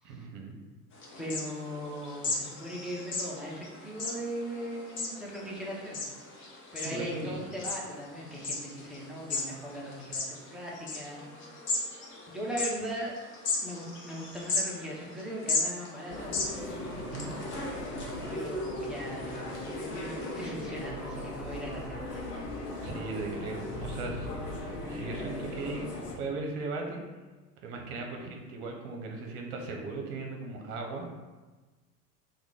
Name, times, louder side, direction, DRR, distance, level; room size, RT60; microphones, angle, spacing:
voice 1, 0.0-0.6 6.8-7.3 16.9-17.3 22.8-24.3 24.6-25.9 26.2-27.0 27.6-31.1, right 3 dB, 50° right, 2 dB, 0.8 m, -38 dB
sound 1, 0.9-20.5, left 3 dB, 25° left, 0.8 m, -37 dB
voice 2, 1.2-6.2 6.7-11.2 12.3-13.2 13.6-16.3 18.2-22.4, equal, ahead, -5 dB, 0.4 m, -39 dB
sound 2, 16.1-26.2, left 1 dB, 90° left, 0.8 m, -38 dB
2.9 x 2.3 x 3.7 m, 1.3 s
figure-of-eight pair, 80°, 46 cm